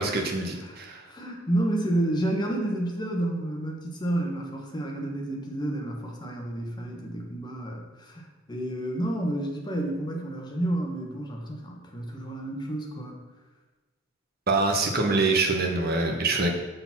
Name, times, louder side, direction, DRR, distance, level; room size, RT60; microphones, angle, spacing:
voice 1, 0.0-1.1 14.5-16.5, right 3 dB, 50° right, 2 dB, 1.0 m, -25 dB
voice 2, 1.1-13.2, right 1 dB, 20° left, 0 dB, 1.1 m, -30 dB
6.6 x 3.9 x 5.9 m, 1.2 s
head